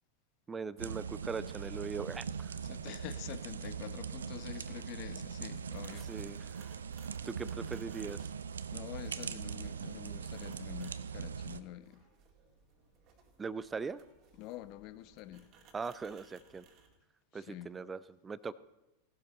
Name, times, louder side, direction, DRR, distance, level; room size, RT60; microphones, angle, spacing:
voice 1, 0.5-2.6 6.1-6.7 7.2-8.3 13.4-14.0 15.7-16.6 17.3-18.5, right 5 dB, 15° right, 0.5 m, -40 dB
sound 1, 0.8-11.6, right 6 dB, 70° right, 0.6 m, -41 dB
voice 2, 2.6-6.3 8.7-12.0 14.4-15.5 17.3-17.7, left 14 dB, 40° left, 0.8 m, -47 dB
sound 2, 4.6-16.9, right 5 dB, 35° right, 2.2 m, -63 dB
17.5 x 12.0 x 4.1 m
figure-of-eight pair, 90°, 0 cm